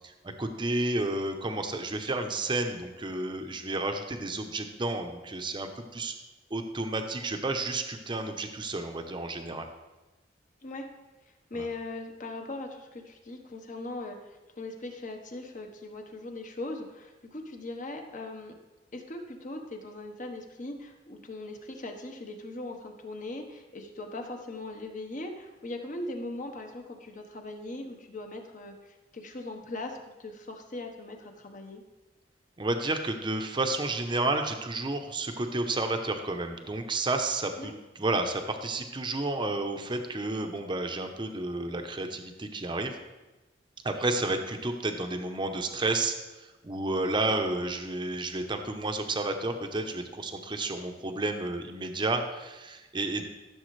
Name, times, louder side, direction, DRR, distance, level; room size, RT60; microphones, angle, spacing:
voice 1, 0.2-6.1 6.5-9.7 11.5-11.7 32.6-43.0 43.8-53.3, right 2 dB, 25° right, 5 dB, 0.8 m, -31 dB
voice 2, 11.2-18.6 18.9-31.8 37.6-37.7, left 2 dB, 45° left, 4 dB, 1.2 m, -40 dB
14.5 x 7.0 x 3.2 m, 1.1 s
head